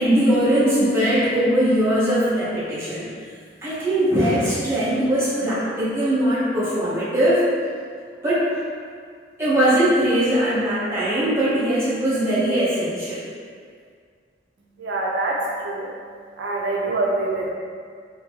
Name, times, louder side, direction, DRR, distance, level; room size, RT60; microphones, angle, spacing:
voice 1, 0.0-3.1 3.6-7.5 8.2-8.6 9.4-13.2, right 1 dB, 15° right, -11 dB, 1.0 m, -20 dB
voice 2, 14.8-15.9 16.4-17.5, right 2 dB, 70° right, -2 dB, 0.4 m, -25 dB
2.9 x 2.7 x 3.5 m, 2.1 s
head